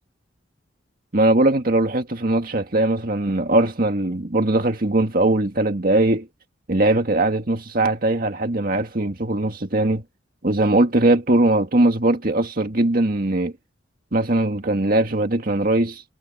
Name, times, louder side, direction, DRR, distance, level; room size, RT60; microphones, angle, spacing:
voice 1, 1.1-6.3 6.7-10.0 10.4-13.5 14.1-16.0, right 2 dB, 45° right, 1.9 m, -20 dB
head